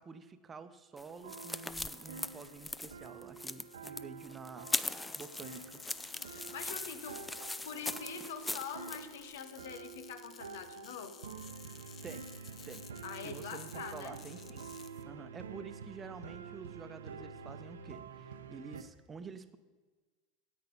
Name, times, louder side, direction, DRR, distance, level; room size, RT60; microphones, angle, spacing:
voice 1, 0.0-4.7 5.2-5.8 12.0-12.3 12.7-12.8 13.2-14.7 15.0-19.6, right 5 dB, 25° right, 10 dB, 0.9 m, -49 dB
sound 1, 1.0-9.0, left 2 dB, 10° left, 0.4 m, -40 dB
sound 2, 1.1-18.8, right 5 dB, 75° right, 0.8 m, -48 dB
sound 3, 4.7-15.0, left 7 dB, 35° left, 0.7 m, -55 dB
voice 2, 6.2-7.3 7.6-11.3 13.0-14.2, left 6 dB, 70° left, 11 dB, 1.0 m, -44 dB
13.5 x 8.8 x 5.4 m, 1.3 s
figure-of-eight pair, 80°, 0 cm